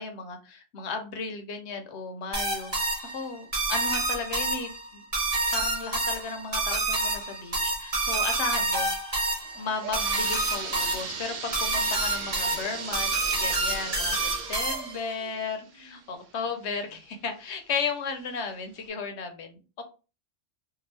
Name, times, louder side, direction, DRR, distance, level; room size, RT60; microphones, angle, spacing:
voice 1, 0.0-2.7 3.0-5.0 5.5-8.9 9.5-14.2 14.5-19.6, left 5 dB, 65° left, 6 dB, 0.9 m, -34 dB
sound 1, 2.3-15.1, right 2 dB, 35° right, 1.0 m, -28 dB
sound 2, 9.4-17.0 17.5-17.6 18.3-18.4 18.8-18.9, right 6 dB, 60° right, 0.5 m, -38 dB
2.7 x 2.3 x 3.2 m, 0.33 s
omnidirectional pair, 1.3 m